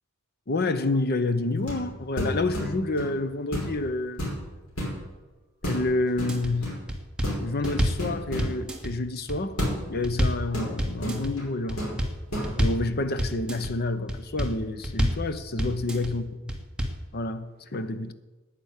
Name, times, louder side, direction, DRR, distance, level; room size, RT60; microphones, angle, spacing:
voice 1, 0.5-4.2 5.6-6.7 7.4-9.6 9.9-11.8 12.6-16.3 17.1-18.1, left 2 dB, 45° left, 0.8 m, -28 dB
sound 1, 1.6-1.9 2.2-3.1 3.5-3.8 4.1-5.0 5.6-5.9 6.2-6.8 7.2-8.5 9.6-9.8 10.5-11.5 11.8-12.0 12.3-12.5, equal, 80° left, 5.1 m, -31 dB
sound 2, 6.1-6.5 6.9-8.1 8.4-8.9 9.3-10.5 10.8-11.3 11.7-12.2 12.4-12.9 13.2-13.7 14.1-14.6 14.8-15.3 15.6-16.1 16.5-17.0, equal, 5° right, 1.5 m, -27 dB
10.0 x 9.9 x 8.2 m
head